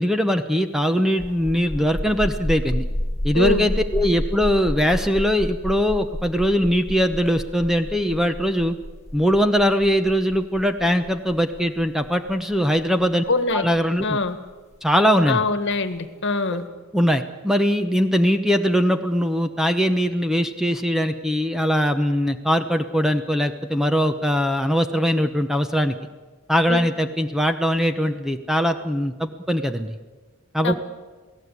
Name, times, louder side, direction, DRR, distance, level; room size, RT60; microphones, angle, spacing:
voice 1, 0.0-2.8 3.2-8.7 9.1-13.2 13.5-14.2 14.8-15.4 16.5-16.6 16.9-25.9 26.5-30.0 30.5-30.8, equal, ahead, 7 dB, 0.8 m, -21 dB
sound 1, 1.1-14.5, left 1 dB, 30° left, 1.4 m, -30 dB
voice 2, 3.3-3.7 13.3-13.7 14.0-14.4 15.3-16.6 26.7-26.8 30.6-30.8, left 3 dB, 55° left, 10 dB, 1.6 m, -23 dB
28.0 x 17.5 x 8.4 m, 1.3 s
head